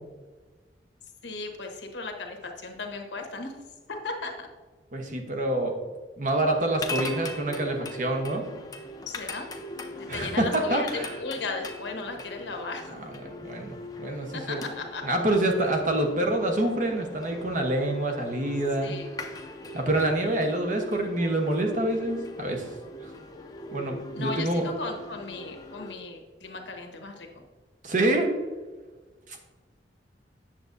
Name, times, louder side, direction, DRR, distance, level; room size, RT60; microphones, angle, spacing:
voice 1, 1.2-3.6 3.9-4.5 9.1-9.5 10.0-12.9 13.4-13.5 14.3-15.1 18.8-19.1 24.1-27.3, left 3 dB, 90° left, 3 dB, 1.1 m, -36 dB
voice 2, 4.9-5.8 6.2-8.4 10.1-11.2 13.2-14.6 15.0-18.9 19.7-22.7 23.7-24.6 27.8-28.3, right 1 dB, 45° right, 3 dB, 1.0 m, -26 dB
sound 1, 6.4-25.9, left 2 dB, 20° left, 0.6 m, -40 dB
8.7 x 7.0 x 2.6 m, 1.3 s
head